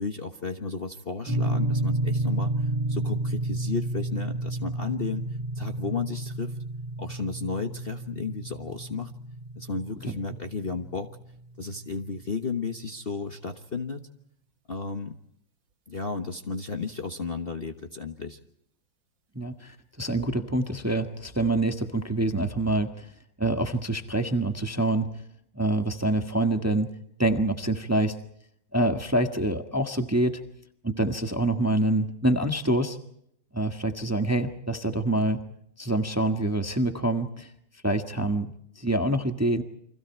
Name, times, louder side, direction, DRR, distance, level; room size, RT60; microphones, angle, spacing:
voice 1, 0.0-5.2 5.5-6.6 7.0-9.1 9.6-11.1 11.6-14.1 14.7-15.2 15.9-18.4, left 4 dB, 35° left, 6 dB, 1.3 m, -33 dB
sound 1, 1.3-11.4, right 1 dB, 70° right, 2.4 m, -31 dB
voice 2, 19.3-23.0 23.4-25.1 25.5-26.9 27.2-28.2 28.7-30.4 30.8-33.0 33.5-35.4 35.8-37.5 37.8-38.5 38.8-39.6, right 1 dB, 10° right, 6 dB, 1.3 m, -26 dB
30.0 x 25.0 x 4.5 m, 0.72 s
omnidirectional pair, 2.0 m